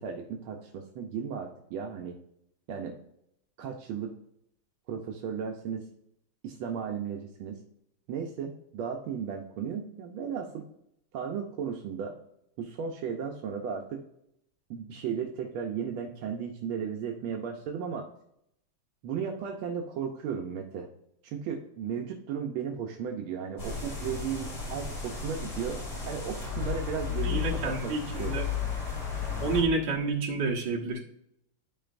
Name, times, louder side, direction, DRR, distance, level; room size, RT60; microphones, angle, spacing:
voice 1, 0.0-2.2 2.7-3.0 3.6-4.1 4.9-5.9 6.4-7.6 8.1-10.7 11.1-12.2 12.6-14.0 14.7-18.1 19.0-20.9 21.2-28.4, right 7 dB, 80° right, 2 dB, 1.6 m, -35 dB
sound 1, 23.6-29.6, left 6 dB, 85° left, 3.6 m, -34 dB
voice 2, 27.2-28.5 29.4-31.0, right 3 dB, 60° right, -2 dB, 2.0 m, -29 dB
11.0 x 4.6 x 2.5 m, 0.76 s
omnidirectional pair, 2.3 m